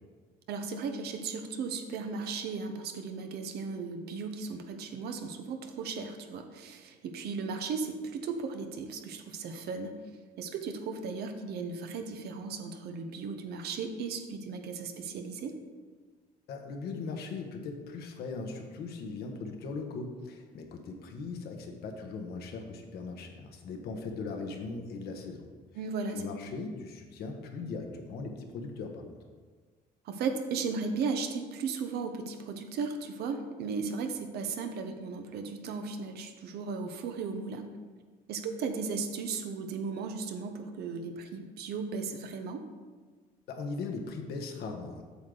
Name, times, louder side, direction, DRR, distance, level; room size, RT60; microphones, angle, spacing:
voice 1, 0.5-10.0 10.4-15.6 25.7-26.3 30.0-37.7 38.3-42.6, right 4 dB, 75° right, 6 dB, 0.9 m, -36 dB
voice 2, 16.5-25.5 26.1-29.0 43.5-45.0, left 4 dB, 70° left, 3 dB, 1.2 m, -39 dB
8.4 x 6.5 x 3.9 m, 1.5 s
cardioid pair, 110°, 17 cm